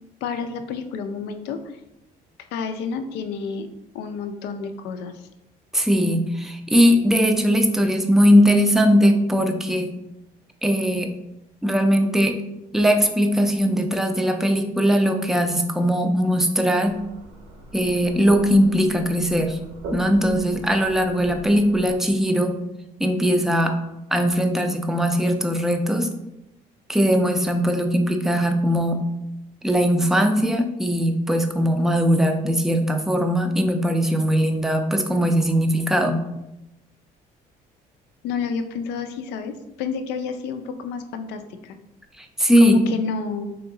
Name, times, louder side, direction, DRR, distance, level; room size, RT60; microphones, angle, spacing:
voice 1, 0.2-1.6 2.5-3.7 3.9-5.3 38.2-41.8 42.6-43.6, left 5 dB, 85° left, 7 dB, 0.5 m, -29 dB
voice 2, 5.7-9.9 10.6-11.1 11.6-12.4 12.7-17.0 17.7-19.6 19.9-22.6 23.0-23.8 24.1-26.1 26.9-29.0 29.6-36.2 42.2-42.8, equal, ahead, 5 dB, 0.4 m, -20 dB
sound 1, 16.9-21.9, right 2 dB, 75° right, 0.8 m, -40 dB
3.4 x 2.9 x 3.7 m, 0.91 s
cardioid pair, 110°, 17 cm